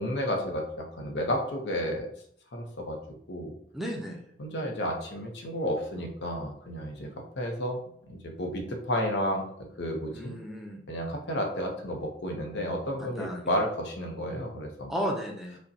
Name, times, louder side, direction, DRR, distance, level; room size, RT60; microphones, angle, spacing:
voice 1, 0.0-2.1 2.5-3.0 3.3-3.5 4.4-9.4 9.8-10.3 10.9-14.9, equal, 75° left, 2 dB, 0.7 m, -32 dB
voice 2, 3.7-4.2 10.1-10.8 13.2-13.4 14.9-15.6, equal, ahead, 0 dB, 0.4 m, -33 dB
5.1 x 2.1 x 2.7 m, 0.67 s
head